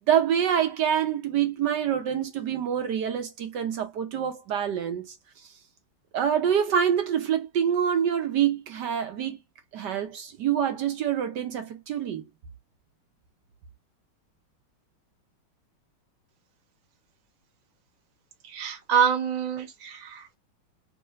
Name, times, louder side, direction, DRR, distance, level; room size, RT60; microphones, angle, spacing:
voice 1, 0.1-5.1 6.1-9.4 9.7-12.2, right 9 dB, 65° right, 1.2 m, -26 dB
voice 2, 18.4-20.4, right 7 dB, 40° right, 0.5 m, -26 dB
3.3 x 3.2 x 3.1 m
omnidirectional pair, 2.3 m